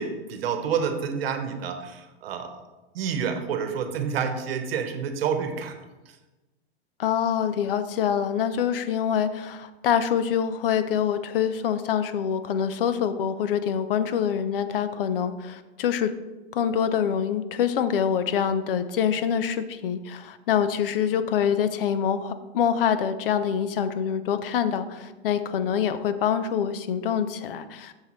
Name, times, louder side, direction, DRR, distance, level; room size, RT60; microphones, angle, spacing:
voice 1, 0.0-2.6 2.9-5.8 6.1-6.2, right 6 dB, 60° right, 7 dB, 1.1 m, -29 dB
voice 2, 7.0-16.1 16.5-27.9, left 8 dB, 55° left, 12 dB, 0.6 m, -25 dB
7.0 x 6.6 x 3.1 m, 1.1 s
hypercardioid pair, 140°, 34 cm